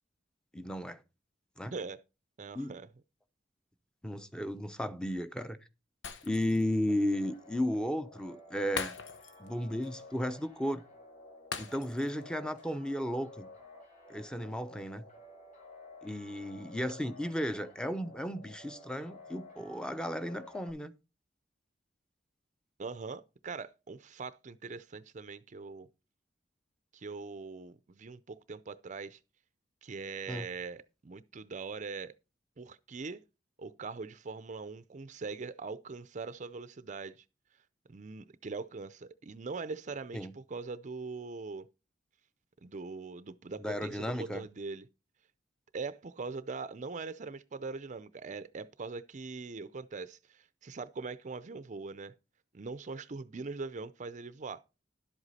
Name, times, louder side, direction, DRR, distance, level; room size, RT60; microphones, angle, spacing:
voice 1, 0.5-1.0 1.6-1.7 2.5-2.8 4.0-5.6 6.2-9.0 9.4-10.8 11.6-13.5 14.1-15.1 16.0-20.9 30.3-30.5 40.1-40.3 43.6-44.5, equal, 5° left, 0.7 m, -34 dB
voice 2, 2.4-2.9 22.8-25.9 26.9-29.2 29.8-32.1 32.6-33.2 33.6-37.2 37.9-41.7 42.6-44.9 45.7-52.1 52.5-54.6, right 4 dB, 40° right, 0.5 m, -42 dB
Shatter, 6.0-6.7 7.1-7.2 8.8-9.5 9.8-10.0 11.5-12.2 12.6-12.7, left 5 dB, 80° left, 0.9 m, -41 dB
sound 1, 6.9-20.7, left 2 dB, 40° left, 3.1 m, -53 dB
11.5 x 8.0 x 4.2 m
head